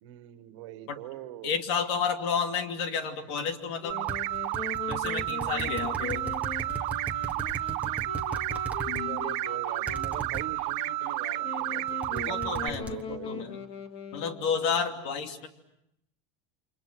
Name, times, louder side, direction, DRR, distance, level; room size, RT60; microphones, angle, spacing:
voice 1, 0.0-1.6 5.3-6.1 7.7-8.1 9.0-12.4 12.7-13.6, right 14 dB, 75° right, 11 dB, 1.6 m, -43 dB
voice 2, 1.4-4.0 4.9-6.3 8.9-9.2 12.3-13.6 14.1-15.5, left 6 dB, 70° left, 6 dB, 2.8 m, -31 dB
Wind instrument woodwind instrument, 3.8-14.7, left 5 dB, 35° left, 2.1 m, -41 dB
sound 1, 3.9-12.7, right 17 dB, 50° right, 1.1 m, -31 dB
sound 2, 4.1-9.0 9.9-10.5 11.9-13.0, right 3 dB, 10° right, 1.3 m, -38 dB
29.5 x 26.0 x 6.2 m, 0.83 s
supercardioid pair, 160°, 15 cm